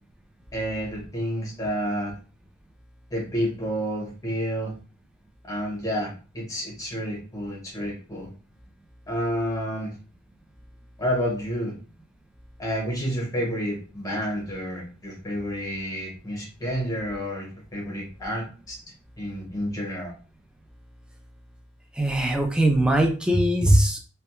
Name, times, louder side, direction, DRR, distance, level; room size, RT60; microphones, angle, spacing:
voice 1, 0.5-2.1 3.1-4.7 5.5-8.3 9.1-9.9 11.0-11.7 12.6-18.8 19.2-20.1, equal, 15° left, -2 dB, 0.9 m, -30 dB
voice 2, 22.0-24.0, right 1 dB, 5° right, 3 dB, 0.4 m, -20 dB
2.2 x 2.2 x 2.9 m, 0.36 s
head